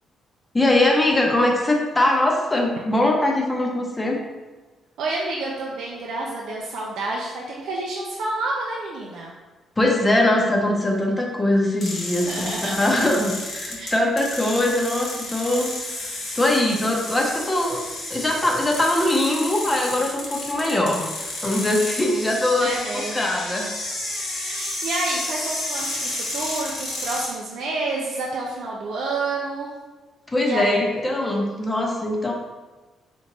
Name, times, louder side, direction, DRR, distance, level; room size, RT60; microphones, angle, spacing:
voice 1, 0.5-4.2 9.8-15.7 16.0-17.8 18.1-22.7 23.1-23.7 30.3-32.3, left 1 dB, 20° left, 0 dB, 0.8 m, -22 dB
voice 2, 5.0-9.3 12.2-12.8 13.7-13.9 22.6-23.4 24.4-29.7 30.4-30.8, right 2 dB, 75° right, -3 dB, 0.5 m, -29 dB
sound 1, 11.8-27.3, left 2 dB, 60° left, 1.5 m, -31 dB
3.4 x 3.1 x 3.9 m, 1.2 s
cardioid pair, 90°, 0 cm